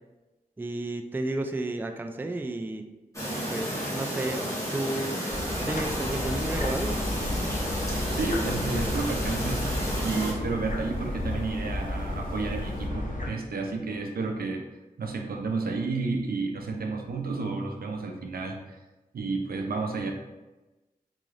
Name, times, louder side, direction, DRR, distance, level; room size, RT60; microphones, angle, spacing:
voice 1, 0.6-2.9 3.5-5.1 5.7-7.0, right 2 dB, 15° right, 5 dB, 0.3 m, -32 dB
Chirp tweet, 3.1-10.3, equal, 20° left, 1.1 m, -32 dB
sound 1, 5.3-12.9, left 1 dB, 80° left, 1.2 m, -42 dB
sound 2, 5.3-13.3, left 1 dB, 55° left, 0.6 m, -33 dB
voice 2, 8.1-9.7 10.0-14.6 15.0-18.8 19.1-20.1, right 3 dB, 80° right, 2 dB, 0.6 m, -31 dB
3.8 x 3.1 x 2.5 m, 1.1 s
cardioid pair, 50°, 15 cm